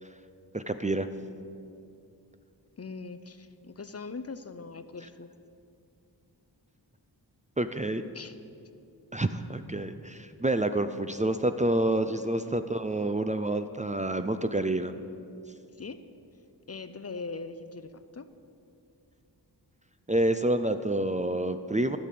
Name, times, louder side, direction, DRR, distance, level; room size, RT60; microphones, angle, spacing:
voice 1, 0.5-1.1 5.0-5.1 7.6-8.0 9.1-14.9 15.5-15.6 20.1-22.0, right 1 dB, 20° right, 9 dB, 0.5 m, -28 dB
voice 2, 2.8-5.3 8.1-8.3 12.5-12.6 15.7-16.1 16.7-18.3, left 4 dB, 35° left, 11 dB, 0.6 m, -41 dB
14.5 x 6.0 x 8.4 m, 2.6 s
cardioid pair, 55°, 42 cm